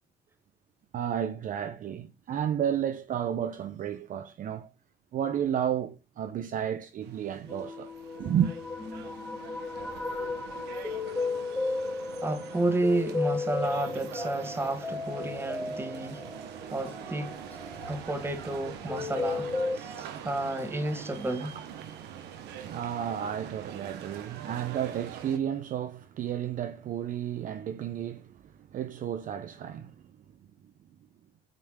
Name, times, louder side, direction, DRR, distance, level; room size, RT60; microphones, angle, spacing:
voice 1, 0.9-4.7 5.1-7.9 8.2-8.5 21.4-21.7 22.0-30.0, right 9 dB, 50° right, 0.7 m, -32 dB
sound 1, 7.0-25.4, right 9 dB, 85° right, 1.4 m, -44 dB
sound 2, 7.5-19.8, left 3 dB, 10° left, 2.3 m, -35 dB
voice 2, 12.2-16.2 16.7-17.4 17.9-21.6, right 2 dB, 15° right, 1.6 m, -31 dB
9.0 x 3.4 x 6.4 m
cardioid pair, 110°, 17 cm